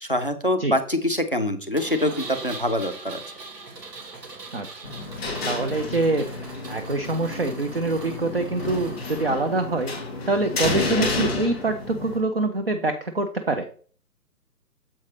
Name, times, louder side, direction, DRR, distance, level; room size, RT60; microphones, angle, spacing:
voice 1, 0.0-3.2, left 1 dB, 35° left, 9 dB, 0.4 m, -25 dB
Engine, 1.8-9.2, right 3 dB, 75° right, 2.2 m, -41 dB
sound 1, 4.8-12.2, left 3 dB, 5° left, 0.7 m, -30 dB
voice 2, 5.4-6.3 6.7-9.9 10.3-13.7, right 2 dB, 40° right, 7 dB, 0.5 m, -25 dB
7.4 x 5.3 x 3.2 m, 0.43 s
hypercardioid pair, 160°, 49 cm